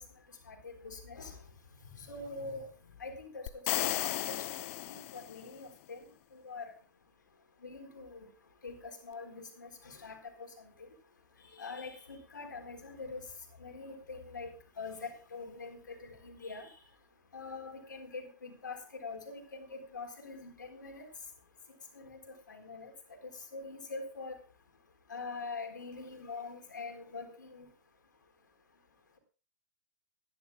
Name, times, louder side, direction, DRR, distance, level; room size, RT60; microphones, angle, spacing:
voice 1, 0.5-1.4 1.9-2.7 3.0-3.5 3.8-6.0 6.3-6.7 7.6-8.3 8.6-10.2 10.8-10.9 11.5-13.2 13.6-14.5 14.8-16.7 17.3-21.1 21.9-22.2 22.5-22.9 23.5-24.4 25.1-27.7, left 4 dB, 75° left, 5 dB, 4.0 m, -44 dB
sound 1, 3.5-5.5, left 18 dB, 45° left, 0.7 m, -34 dB
23.5 x 11.0 x 2.3 m, 0.35 s
figure-of-eight pair, 105°, 10 cm